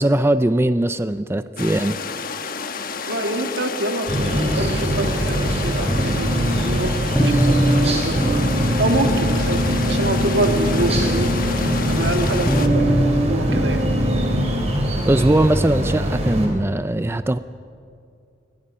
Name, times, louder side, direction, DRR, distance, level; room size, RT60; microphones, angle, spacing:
voice 1, 0.0-2.0 15.1-17.4, right 1 dB, 15° right, 12 dB, 0.5 m, -20 dB
sound 1, 1.6-12.7, left 5 dB, 55° left, 1.2 m, -30 dB
voice 2, 3.1-4.1 4.4-8.4 8.8-11.3 11.9-13.8, right 1 dB, 80° right, 5 dB, 2.1 m, -26 dB
sound 2, 4.1-16.5, right 1 dB, 35° right, 4.2 m, -23 dB
sound 3, 5.9-14.4, equal, 5° left, 7.8 m, -23 dB
28.5 x 21.5 x 5.6 m, 2.4 s
head